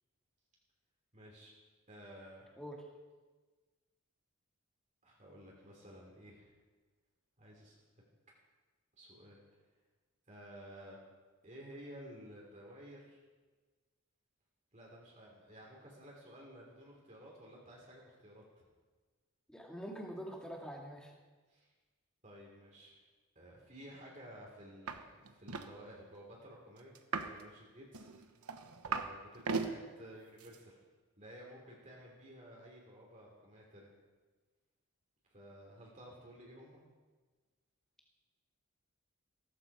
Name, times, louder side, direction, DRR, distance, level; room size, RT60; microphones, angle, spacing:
voice 1, 1.1-1.5 1.9-2.5 5.0-6.5 7.4-7.8 8.9-9.4 10.3-11.0 11.4-13.2 14.7-18.6 21.5-21.7 22.2-23.0 23.3-28.1 28.8-30.8 31.2-33.9 35.3-36.8, equal, 35° right, -3 dB, 3.1 m, -54 dB
voice 2, 19.5-21.1, equal, 5° left, -1 dB, 2.2 m, -45 dB
sound 1, 24.9-25.0 25.3-25.7 27.0-27.4 27.9-29.1 29.4-29.7 30.4-30.6, right 4 dB, 85° right, 1.1 m, -37 dB
16.0 x 14.0 x 4.9 m, 1.3 s
head